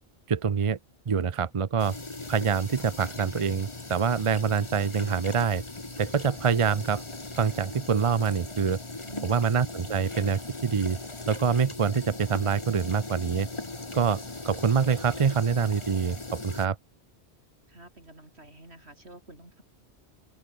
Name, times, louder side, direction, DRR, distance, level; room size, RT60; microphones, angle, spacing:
voice 1, 0.3-0.8 1.1-1.9 2.3-5.6 6.0-7.0 7.4-8.8 9.2-11.0 11.3-13.5 13.9-16.8, right 6 dB, 35° right, 0.6 m, -25 dB
sound 1, 1.8-16.7, left 2 dB, 25° left, 1.9 m, -39 dB
voice 2, 9.0-9.6 17.7-19.6, right 2 dB, 75° right, 6.0 m, -48 dB
open air
omnidirectional pair, 1.1 m